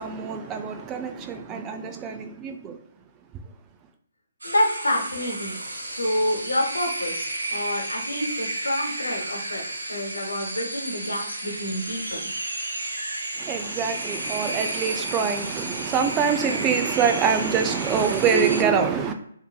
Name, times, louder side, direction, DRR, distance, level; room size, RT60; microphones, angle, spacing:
voice 1, 0.0-2.8 13.4-19.1, right 6 dB, 20° right, 0.3 m, -25 dB
voice 2, 4.4-9.6 9.9-12.3, left 1 dB, 90° left, 1.0 m, -28 dB
sound 1, 4.4-18.6, right 1 dB, 85° right, 0.9 m, -32 dB
3.5 x 2.7 x 2.3 m
hypercardioid pair, 145°, 0 cm